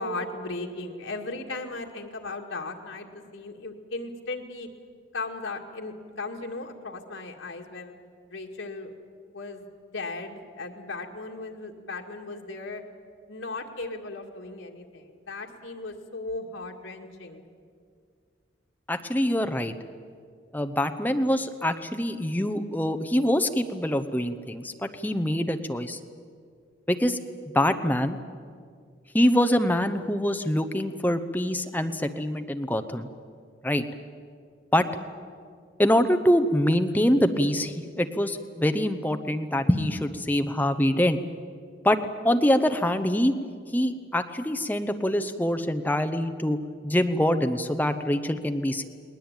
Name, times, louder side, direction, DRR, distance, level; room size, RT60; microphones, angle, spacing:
voice 1, 0.0-4.7 5.1-7.9 8.3-8.9 9.3-9.7 9.9-12.8 13.3-17.4, left 3 dB, 85° left, 2 dB, 2.2 m, -36 dB
voice 2, 18.9-19.7 20.5-26.0 26.9-27.2 27.5-28.2 29.1-33.1 33.6-33.8 34.7-34.9 35.8-41.2 41.8-42.0 42.2-43.3 43.7-46.6 46.8-48.8, equal, 10° left, 8 dB, 0.8 m, -24 dB
20.0 x 19.5 x 9.0 m, 2.2 s
head